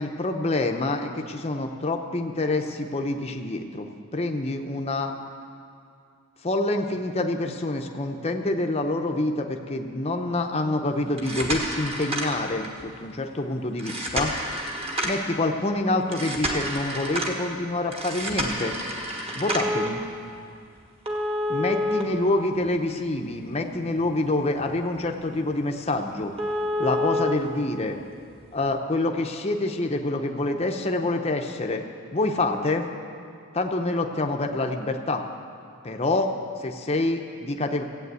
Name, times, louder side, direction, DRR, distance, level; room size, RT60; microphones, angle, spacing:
voice 1, 0.0-5.1 6.4-14.3 15.0-18.8 19.3-20.0 21.5-26.3 26.8-28.0 28.5-31.8 32.1-32.8 33.5-35.2 35.8-36.3 36.6-37.8, left 2 dB, 25° left, 3 dB, 0.7 m, -26 dB
sound 1, 11.1-12.8 13.8-15.3 16.1-17.4 17.9-19.9 21.1-22.9 23.3-23.4 24.0-24.1 24.5-24.7 25.0-25.1 25.5-25.6 25.9-26.0 26.4-27.3 28.4-28.5, equal, 25° right, 1.4 m, -29 dB
15.0 x 8.6 x 8.2 m, 2.4 s
head